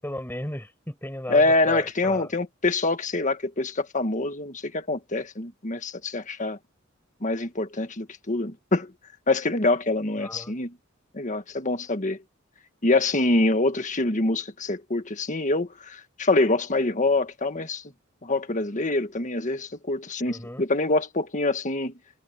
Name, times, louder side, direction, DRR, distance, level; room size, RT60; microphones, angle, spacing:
voice 1, 0.0-2.3 10.2-10.5 20.3-20.6, left 1 dB, 10° left, 5.9 m, -35 dB
voice 2, 1.3-6.6 7.2-8.9 9.3-10.8 11.1-12.2 12.8-17.8 18.2-21.9, left 2 dB, 40° left, 1.7 m, -25 dB
head